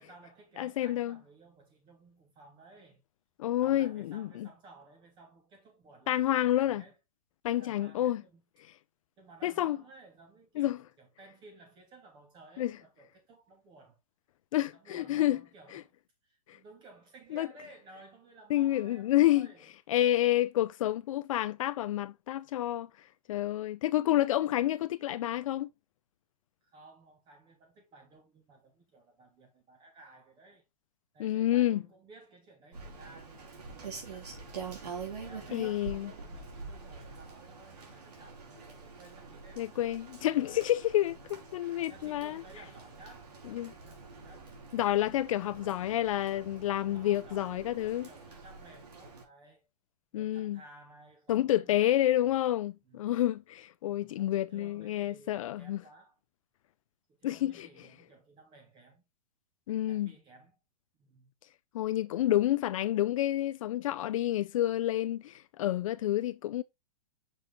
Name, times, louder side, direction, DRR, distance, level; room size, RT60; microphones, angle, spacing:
voice 1, 0.0-3.0 3.6-7.0 7.6-8.4 9.2-14.0 14.7-15.9 16.2-19.7 26.6-30.6 31.1-34.7 35.2-39.6 40.4-40.7 41.0-41.4 41.9-44.6 45.4-45.7 46.9-49.7 50.1-52.4 52.8-53.2 53.9-56.2 57.1-59.1 59.9-60.6 60.9-61.3 62.1-62.3, right 3 dB, 25° right, 2.9 m, -56 dB
voice 2, 0.6-1.2 3.4-4.5 6.1-6.8 7.4-8.2 9.4-9.8 10.6-10.8 12.6-12.7 14.5-15.4 15.7-15.8 16.5-16.6 17.3-17.5 18.5-19.5 19.9-22.9 23.3-25.7 31.2-31.8 35.5-36.1 39.6-42.4 43.5-43.7 44.7-48.1 50.1-50.6 51.3-55.8 57.2-57.7 59.7-60.1 61.7-66.6, left 13 dB, 55° left, 0.5 m, -29 dB
Rain, 32.7-49.2, right 4 dB, 85° right, 3.0 m, -46 dB
6.2 x 4.9 x 3.6 m
hypercardioid pair, 150°, 20 cm